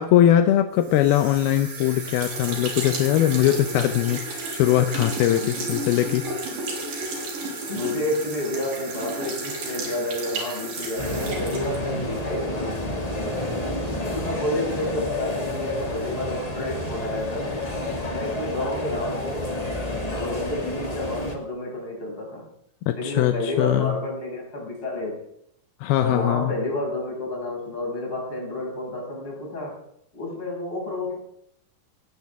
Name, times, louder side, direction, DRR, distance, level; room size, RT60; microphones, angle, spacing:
voice 1, 0.0-6.2 22.9-23.9 25.8-26.5, left 12 dB, 85° left, 8 dB, 2.7 m, -21 dB
sound 1, 0.8-12.2, right 2 dB, 70° right, 5.6 m, -33 dB
voice 2, 5.4-5.8 7.7-13.5 14.0-17.6 18.1-19.6 20.0-22.5 22.9-25.3 26.0-29.9 30.1-31.2, left 1 dB, 30° left, -3 dB, 7.4 m, -30 dB
sound 2, 11.0-21.3, left 1 dB, 15° left, 1.4 m, -30 dB
19.0 x 16.0 x 3.6 m, 0.72 s
omnidirectional pair, 4.4 m